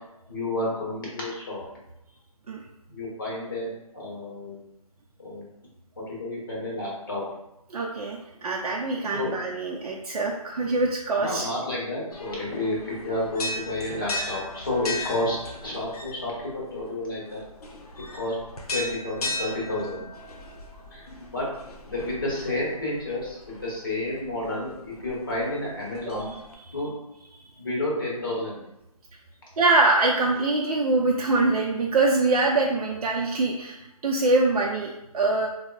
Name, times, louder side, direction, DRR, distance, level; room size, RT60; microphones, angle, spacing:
voice 1, 0.3-1.6 2.9-4.6 5.2-5.4 6.0-7.2 9.1-9.3 11.2-17.4 18.1-18.4 18.7-20.0 20.9-21.5 21.8-26.3 26.7-26.9 27.6-28.6, left 1 dB, 35° left, -4 dB, 0.8 m, -30 dB
voice 2, 7.7-11.5 26.1-26.2 26.7-26.8 29.6-35.5, right 2 dB, 80° right, -1 dB, 0.4 m, -24 dB
sound 1, 12.1-26.5, left 2 dB, 90° left, 0.6 m, -38 dB
3.3 x 2.0 x 2.2 m, 0.86 s
hypercardioid pair, 180°, 19 cm